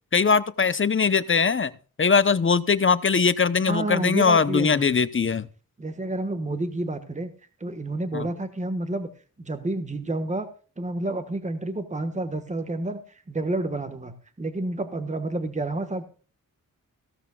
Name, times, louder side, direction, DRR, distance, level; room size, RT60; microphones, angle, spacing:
voice 1, 0.1-1.7 2.0-5.5 8.1-8.3, left 5 dB, 35° left, 15 dB, 0.7 m, -21 dB
voice 2, 3.7-4.9 5.8-7.3 7.6-9.1 9.4-10.5 10.8-16.0, right 2 dB, 20° right, 9 dB, 1.3 m, -29 dB
16.0 x 13.0 x 2.3 m, 0.38 s
wide cardioid pair, 110°, 34 cm